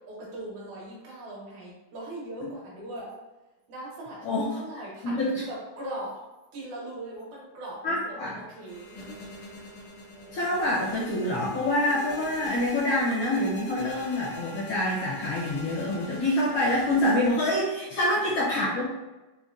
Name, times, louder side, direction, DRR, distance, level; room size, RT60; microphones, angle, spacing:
voice 1, 0.1-3.1 3.7-6.2 6.5-9.2, right 1 dB, 85° right, -4 dB, 2.4 m, -40 dB
voice 2, 4.2-4.6 5.0-5.4 7.8-8.4 10.3-18.9, left 1 dB, 75° left, -7 dB, 1.2 m, -26 dB
sound 1, 8.7-17.3, equal, 90° left, 2.4 m, -43 dB
5.5 x 2.2 x 2.4 m, 1.1 s
omnidirectional pair, 3.4 m